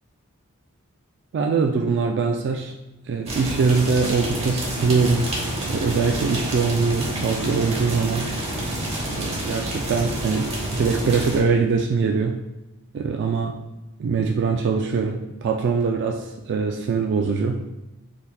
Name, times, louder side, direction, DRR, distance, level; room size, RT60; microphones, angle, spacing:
voice 1, 1.3-2.7 3.1-5.3 5.7-8.3 9.1-12.4 12.9-13.6 14.0-17.6, right 5 dB, 55° right, 2 dB, 0.3 m, -22 dB
sound 1, 3.3-11.4, right 1 dB, 30° right, 1.0 m, -28 dB
4.3 x 4.0 x 2.2 m, 1.0 s
head